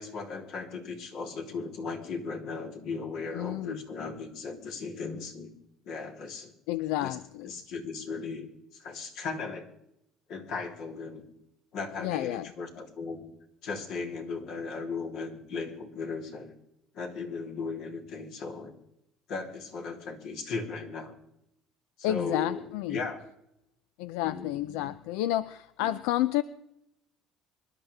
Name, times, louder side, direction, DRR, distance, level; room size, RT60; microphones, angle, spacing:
voice 1, 0.0-5.5 5.8-6.5 7.0-7.2 7.4-9.7 10.3-11.2 11.7-13.2 13.6-16.5 16.9-18.7 19.3-21.2 22.0-23.2 24.2-24.9 25.8-25.9, left 4 dB, 65° left, 1 dB, 3.4 m, -37 dB
voice 2, 3.3-3.8 6.7-7.5 12.0-12.5 22.0-23.0 24.0-26.4, left 14 dB, 90° left, 15 dB, 0.5 m, -30 dB
25.5 x 12.0 x 3.5 m, 0.80 s
cardioid pair, 120°, 0 cm